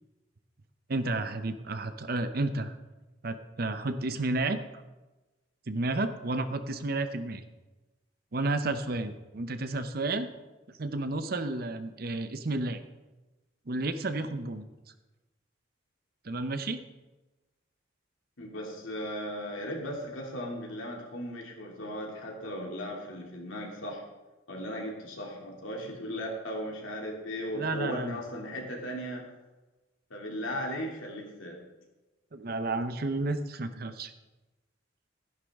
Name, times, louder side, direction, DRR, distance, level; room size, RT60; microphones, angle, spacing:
voice 1, 0.9-2.8 3.2-4.6 5.7-7.4 8.3-10.3 10.8-12.8 13.7-14.7 16.3-16.8 27.5-28.2 32.3-34.1, right 2 dB, 50° right, 10 dB, 0.7 m, -31 dB
voice 2, 18.4-24.0 24.5-29.2 30.1-31.6, equal, 85° left, -1 dB, 2.6 m, -37 dB
13.5 x 10.5 x 3.6 m, 1.1 s
head